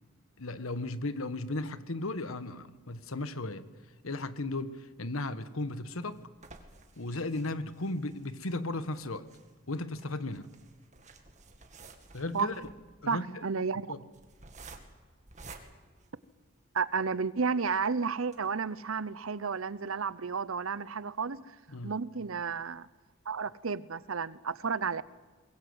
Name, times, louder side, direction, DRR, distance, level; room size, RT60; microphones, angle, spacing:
voice 1, 0.4-3.7 4.0-6.2 7.0-9.3 9.7-10.5 12.1-12.5 13.0-13.4 13.9-14.0 21.7-21.9, left 2 dB, 80° left, 12 dB, 1.4 m, -35 dB
sound 1, 5.4-16.8 17.3-17.4 17.7-17.8 18.2-18.4, right 3 dB, 35° right, 2.1 m, -53 dB
voice 2, 13.1-13.8 16.7-21.4 21.8-22.9 23.3-25.0, right 5 dB, 80° right, 18 dB, 0.8 m, -32 dB
23.0 x 21.5 x 8.1 m, 1.3 s
head